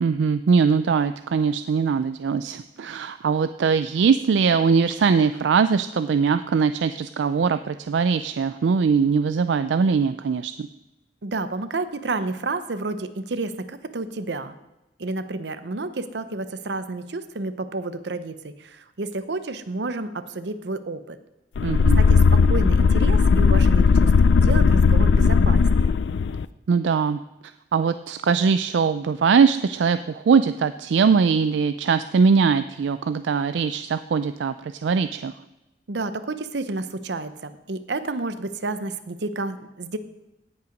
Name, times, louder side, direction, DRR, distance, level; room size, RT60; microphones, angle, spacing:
voice 1, 0.0-10.7 21.6-22.0 26.7-27.2 27.7-35.3, right 5 dB, 85° right, 11 dB, 0.4 m, -21 dB
voice 2, 11.2-14.5 15.0-21.2 22.0-26.0 35.9-40.0, right 3 dB, 70° right, 11 dB, 0.8 m, -30 dB
sound 1, 21.5-26.4, left 5 dB, 80° left, 0.4 m, -17 dB
17.0 x 5.7 x 5.2 m, 0.97 s
head